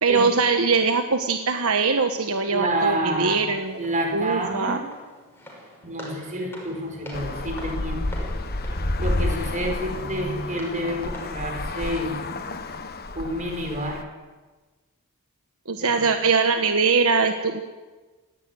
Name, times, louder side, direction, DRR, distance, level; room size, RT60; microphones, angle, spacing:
voice 1, 0.0-3.8 4.1-4.8 15.7-17.6, right 4 dB, 70° right, 6 dB, 1.3 m, -22 dB
voice 2, 2.5-3.4 3.8-4.9 5.8-8.3 9.0-12.2 13.1-14.0 15.8-16.1, right 1 dB, 35° right, 3 dB, 4.9 m, -29 dB
Walk footsteps, 3.5-11.5, equal, 10° left, 5.7 m, -45 dB
sound 1, 6.6-12.1, right 1 dB, 85° left, 4.6 m, -44 dB
Traffic noise roadway noise, 7.1-14.0, left 2 dB, 45° left, 1.4 m, -30 dB
18.0 x 16.5 x 9.5 m, 1.3 s
head